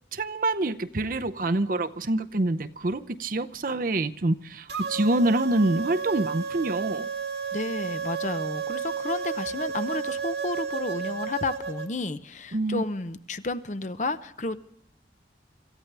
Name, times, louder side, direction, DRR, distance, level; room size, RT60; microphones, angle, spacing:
voice 1, 0.1-7.1 12.5-12.8, right 2 dB, 50° right, 11 dB, 0.7 m, -26 dB
sound 1, 4.7-11.9, right 6 dB, 75° right, 1.7 m, -32 dB
voice 2, 7.5-14.6, left 2 dB, 40° left, 12 dB, 0.7 m, -31 dB
26.5 x 14.5 x 3.4 m, 0.72 s
head